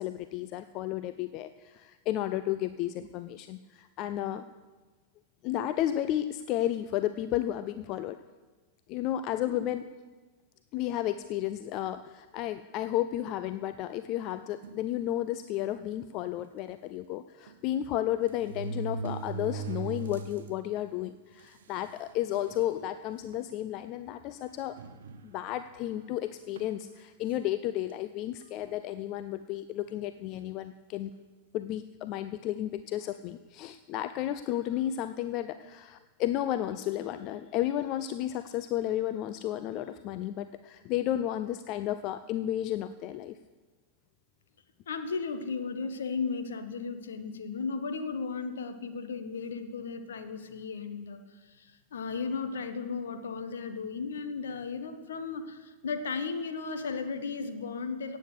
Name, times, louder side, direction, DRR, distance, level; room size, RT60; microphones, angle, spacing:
voice 1, 0.0-4.4 5.4-8.2 8.9-9.8 10.7-24.8 25.2-31.1 31.5-43.4, left 12 dB, 40° left, 11 dB, 0.5 m, -32 dB
sound 1, 14.6-14.9 15.7-15.8 16.1-16.2 17.5-17.6 18.2-20.5 21.0-21.1 21.9-22.0 22.3-22.7 23.3-23.5 24.8-25.6 26.6-26.8, right 4 dB, 60° right, 0.9 m, -38 dB
voice 2, 44.9-58.2, left 4 dB, 65° left, 8 dB, 1.3 m, -35 dB
17.5 x 8.5 x 6.6 m, 1.3 s
figure-of-eight pair, 90°, 0 cm